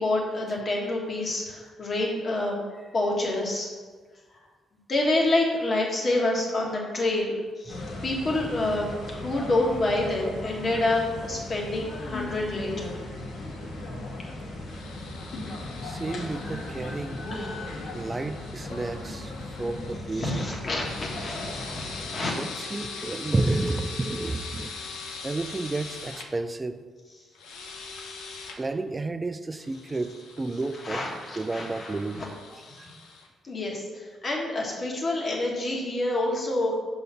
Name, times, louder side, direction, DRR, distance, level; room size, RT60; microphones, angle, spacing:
voice 1, 0.0-2.6 2.9-3.7 4.9-13.0 17.3-17.9 19.5-19.6 20.1-22.3 30.8-31.9 32.7-32.8 33.5-36.8, left 2 dB, 40° left, -1 dB, 1.6 m, -28 dB
sound 1, 7.7-22.0, left 2 dB, 65° left, 1.4 m, -37 dB
sound 2, 14.7-20.0 20.7-26.3 27.3-28.6 29.6-33.3, left 4 dB, 85° left, 0.8 m, -42 dB
voice 2, 15.8-17.3 17.9-19.3 19.6-20.3 22.1-24.7 25.2-26.8 28.6-31.0 31.4-32.9, right 2 dB, 25° right, 10 dB, 0.4 m, -31 dB
5.4 x 4.0 x 5.8 m, 1.4 s
cardioid pair, 85°, 0 cm